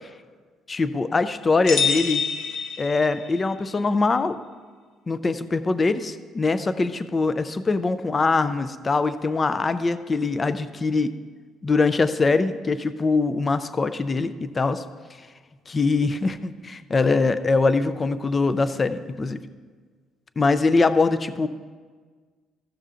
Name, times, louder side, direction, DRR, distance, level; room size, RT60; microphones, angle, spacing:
voice 1, 0.7-2.2 2.8-4.4 5.1-11.1 11.6-14.8 15.7-19.4 20.4-21.5, left 3 dB, 20° left, 12 dB, 0.4 m, -23 dB
sound 1, 1.6-3.5, left 6 dB, 50° left, 0.9 m, -26 dB
14.0 x 6.8 x 3.7 m, 1.5 s
cardioid pair, 175°, 0 cm